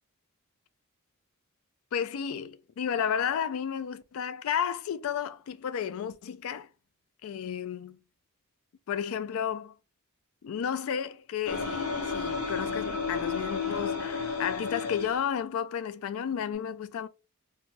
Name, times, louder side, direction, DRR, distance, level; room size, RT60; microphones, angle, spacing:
voice 1, 1.9-6.7 7.2-8.0 8.9-9.7 10.4-17.1, left 8 dB, 65° left, 0.3 m, -32 dB
sound 1, 11.5-15.2, left 5 dB, 85° left, 0.8 m, -32 dB
2.6 x 2.2 x 3.1 m
head